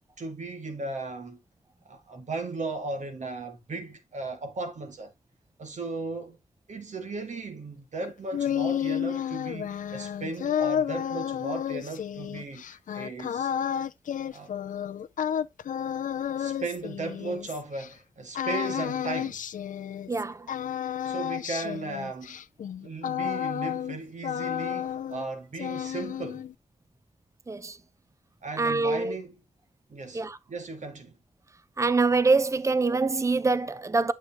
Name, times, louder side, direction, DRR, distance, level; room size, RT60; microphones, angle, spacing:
voice 1, 0.2-1.4 1.9-5.1 5.6-6.4 6.7-13.5 14.3-14.5 16.4-19.4 21.0-22.4 22.8-26.4 28.4-29.4 29.9-31.2, right 3 dB, 65° right, 2.1 m, -36 dB
sound 1, 8.0-17.9 18.3-20.2 20.5-24.0 24.2-25.3 25.5-26.5, left 9 dB, 75° left, 0.4 m, -31 dB
voice 2, 20.1-20.5 27.5-27.8 28.6-29.2 30.1-30.4 31.8-34.1, right 3 dB, 20° right, 0.6 m, -24 dB
8.6 x 6.7 x 3.0 m
cardioid pair, 65°, 13 cm